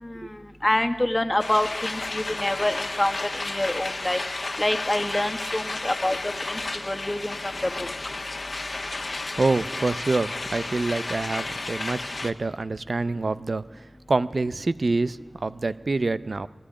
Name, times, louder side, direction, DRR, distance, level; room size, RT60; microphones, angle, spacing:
voice 1, 0.0-4.2 4.6-7.9, left 1 dB, 25° left, 6 dB, 1.7 m, -27 dB
sound 1, 1.4-12.3, left 2 dB, 65° left, 1.3 m, -32 dB
voice 2, 9.3-16.5, right 3 dB, 75° right, 14 dB, 0.6 m, -26 dB
21.0 x 17.5 x 10.0 m, 1.2 s
wide cardioid pair, 55°, 0 cm